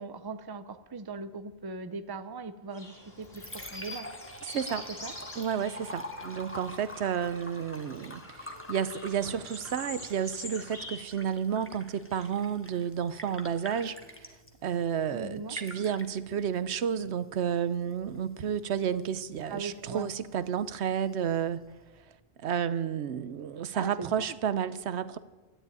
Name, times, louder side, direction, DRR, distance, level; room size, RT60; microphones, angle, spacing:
voice 1, 0.0-3.4 3.7-4.1 5.0-5.1 15.1-15.6 19.5-20.1 23.7-24.4, right 4 dB, 25° right, 10 dB, 0.7 m, -39 dB
sound 1, 2.7-11.0, left 2 dB, 60° left, 3.1 m, -46 dB
Liquid, 3.0-22.0, left 1 dB, 10° left, 1.3 m, -47 dB
voice 2, 4.5-4.9 5.4-14.3 14.6-21.6 22.4-25.2, right 8 dB, 80° right, 14 dB, 1.0 m, -31 dB
12.5 x 11.0 x 9.3 m, 1.2 s
omnidirectional pair, 1.1 m